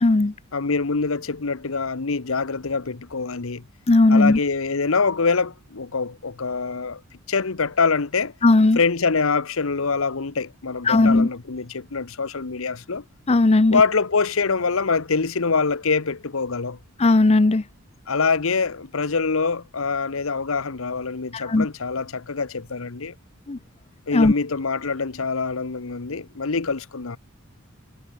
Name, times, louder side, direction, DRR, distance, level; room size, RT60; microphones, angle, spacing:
voice 1, 0.0-0.3 3.9-4.4 8.4-8.8 10.9-11.3 13.3-13.8 17.0-17.6 21.3-21.7 23.5-23.6 24.1-24.3, left 2 dB, 30° left, 0.6 m, -16 dB
voice 2, 0.5-3.6 4.1-7.0 7.3-8.3 8.7-13.0 13.7-16.8 18.1-23.1 24.1-27.2, left 4 dB, 70° left, 1.0 m, -24 dB
head